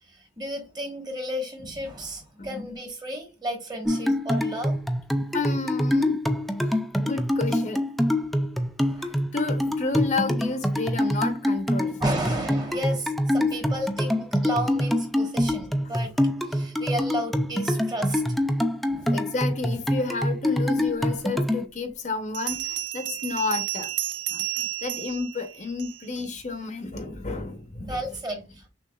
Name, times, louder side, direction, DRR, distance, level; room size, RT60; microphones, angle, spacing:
voice 1, 0.0-4.8 8.8-9.1 12.0-16.1 16.4-18.2 18.9-19.2 27.8-28.7, equal, 20° right, 1.2 m, -33 dB
voice 2, 2.4-2.8 5.3-6.2 6.7-7.8 9.0-12.0 19.1-23.9 24.3-28.0, left 3 dB, 40° left, 0.7 m, -31 dB
sound 1, 3.9-21.6, left 1 dB, ahead, 0.3 m, -25 dB
Bell, 22.3-26.2, right 14 dB, 75° right, 0.4 m, -32 dB
6.3 x 2.4 x 2.3 m
head